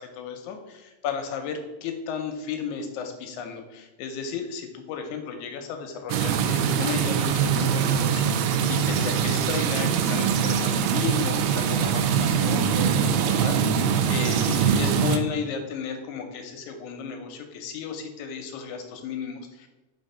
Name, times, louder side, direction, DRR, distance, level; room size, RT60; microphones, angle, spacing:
voice 1, 0.0-19.7, left 6 dB, 75° left, 5 dB, 1.8 m, -34 dB
sound 1, 6.1-15.2, right 7 dB, 85° right, 2.2 m, -23 dB
5.0 x 3.7 x 5.3 m, 1.1 s
omnidirectional pair, 3.8 m